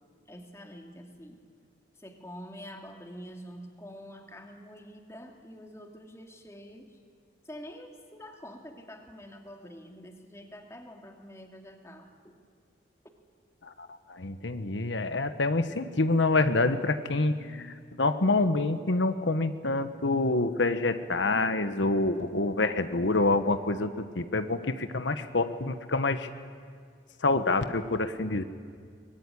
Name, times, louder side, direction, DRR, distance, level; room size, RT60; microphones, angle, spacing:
voice 1, 0.3-1.4 1.9-7.0 7.4-12.4, equal, 15° left, 3 dB, 2.3 m, -46 dB
voice 2, 13.6-26.3 27.2-28.4, left 2 dB, 85° left, 10 dB, 1.2 m, -27 dB
23.0 x 21.5 x 9.9 m, 2.1 s
head